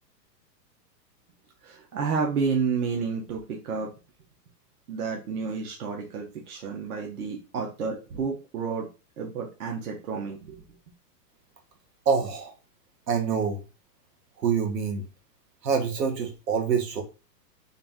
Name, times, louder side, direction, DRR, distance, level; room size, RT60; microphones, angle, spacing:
voice 1, 1.6-3.9 4.9-8.9 9.2-10.6, right 5 dB, 60° right, 1 dB, 1.1 m, -30 dB
voice 2, 12.0-12.5 13.1-13.6 14.4-15.1 15.6-17.0, right 6 dB, 85° right, 3 dB, 1.6 m, -26 dB
4.0 x 2.7 x 3.6 m, 0.31 s
hypercardioid pair, 160°, 49 cm